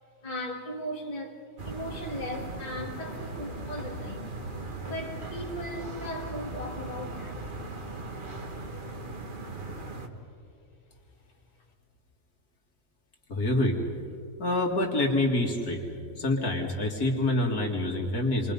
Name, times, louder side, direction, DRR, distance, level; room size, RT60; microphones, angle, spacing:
voice 1, 0.2-4.3 4.8-7.7, equal, 25° left, -2 dB, 2.3 m, -38 dB
sound 1, 1.6-10.1, right 2 dB, 35° right, 1.6 m, -38 dB
voice 2, 13.3-13.8 14.4-15.8 16.2-18.5, left 2 dB, 70° left, 1 dB, 2.6 m, -26 dB
29.5 x 23.5 x 5.4 m, 2.7 s
omnidirectional pair, 1.7 m